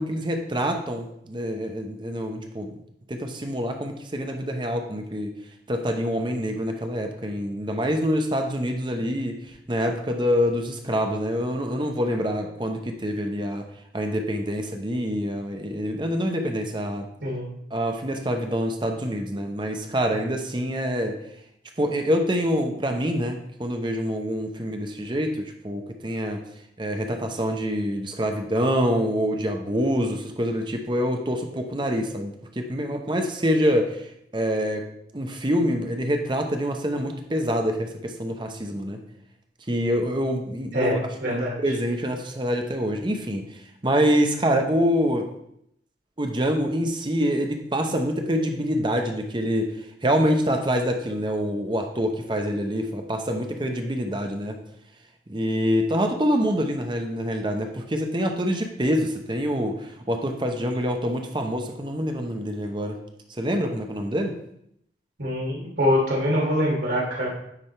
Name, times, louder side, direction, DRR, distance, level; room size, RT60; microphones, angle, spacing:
voice 1, 0.0-2.8 3.1-5.3 5.7-13.7 13.9-17.1 17.7-21.2 21.8-26.4 26.8-34.8 35.1-39.0 39.7-41.0 41.2-43.6 43.8-45.3 46.2-49.7 50.0-54.6 55.3-63.0 63.4-64.4, equal, 25° right, 4 dB, 0.8 m, -26 dB
voice 2, 17.2-17.5 40.7-41.5 65.2-67.3, equal, 80° right, -4 dB, 2.7 m, -24 dB
9.8 x 3.5 x 4.5 m, 0.75 s
head